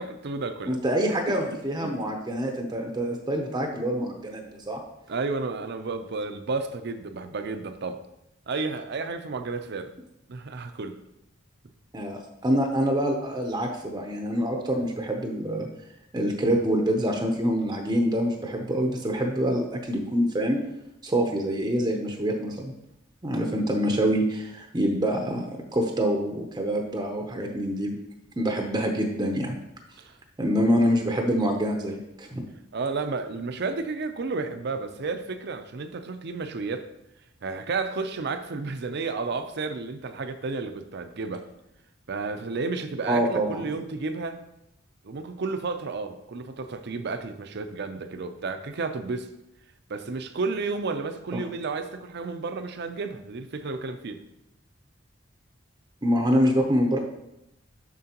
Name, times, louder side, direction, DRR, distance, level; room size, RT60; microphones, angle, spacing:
voice 1, 0.0-0.8 1.3-2.0 5.1-8.0 8.5-9.9 10.3-10.9 30.0-30.1 32.7-36.8 37.4-41.4 42.1-44.4 45.0-49.3 49.9-54.2, right 4 dB, 60° right, 9 dB, 0.6 m, -32 dB
voice 2, 0.7-4.8 11.9-15.7 16.1-20.6 21.0-22.7 23.2-25.4 25.7-27.9 28.4-29.6 30.4-32.4 43.1-43.6 56.0-57.0, equal, 20° right, 2 dB, 0.7 m, -26 dB
7.4 x 6.1 x 2.9 m, 0.85 s
head